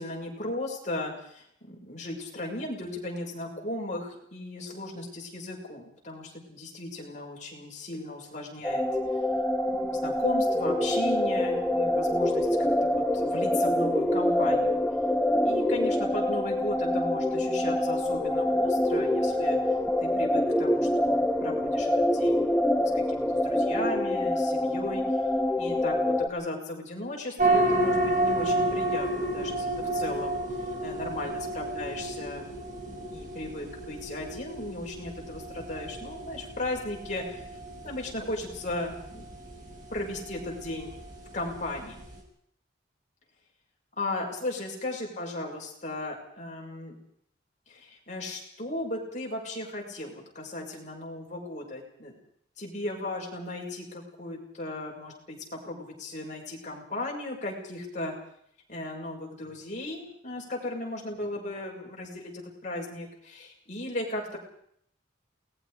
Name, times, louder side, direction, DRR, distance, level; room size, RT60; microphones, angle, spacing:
voice 1, 0.0-8.8 9.7-14.8 15.4-19.6 20.0-22.4 22.8-25.0 25.6-30.4 30.8-37.4 37.8-39.3 39.9-40.9 41.3-42.1 44.0-47.0 47.7-52.1 52.6-58.1 58.7-64.4, left 1 dB, 40° left, -1 dB, 6.5 m, -36 dB
sound 1, 8.6-26.3, left 1 dB, 5° left, 1.3 m, -26 dB
sound 2, 27.4-42.2, right 1 dB, 40° right, 5.9 m, -31 dB
28.5 x 20.5 x 5.1 m, 0.68 s
head